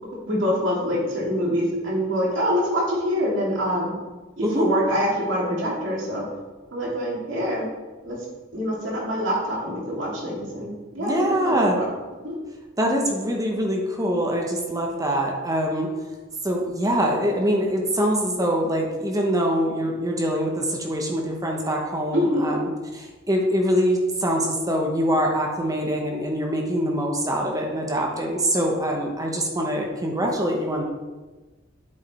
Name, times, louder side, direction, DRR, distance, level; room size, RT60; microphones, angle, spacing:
voice 1, 0.3-4.0 4.4-6.2 6.7-7.7 8.0-8.2 8.5-11.9 12.2-12.4 22.1-22.5, equal, 70° right, -4 dB, 2.5 m, -25 dB
voice 2, 11.0-11.8 12.8-15.9 16.4-30.8, equal, 20° right, 1 dB, 0.9 m, -24 dB
8.3 x 4.9 x 4.2 m, 1.2 s
head